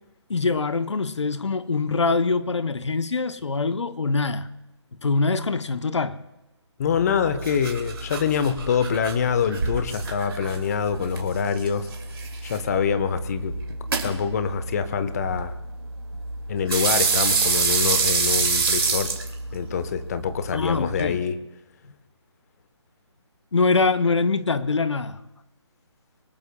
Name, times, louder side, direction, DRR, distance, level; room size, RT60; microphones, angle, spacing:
voice 1, 0.3-4.5 5.0-6.2 20.5-21.2 23.5-25.2, left 4 dB, 70° left, 0.8 m, -24 dB
voice 2, 6.8-11.9 12.4-13.6 14.0-15.5 16.5-19.1 19.5-21.4, left 7 dB, 35° left, 1.0 m, -25 dB
sound 1, 6.9-21.1, right 4 dB, 55° right, 2.6 m, -27 dB
24.0 x 19.5 x 2.3 m
figure-of-eight pair, 150°, 15 cm